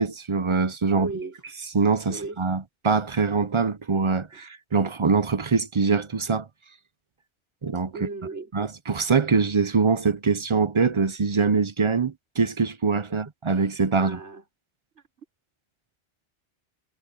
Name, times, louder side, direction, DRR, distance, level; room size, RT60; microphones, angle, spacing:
voice 1, 0.0-1.1 1.7-6.5 7.6-7.9 8.5-14.2, right 4 dB, 35° right, 0.6 m, -23 dB
voice 2, 0.9-1.3 2.1-2.4 7.9-8.5 14.0-14.4, right 3 dB, 80° right, 5.2 m, -35 dB
omnidirectional pair, 1.2 m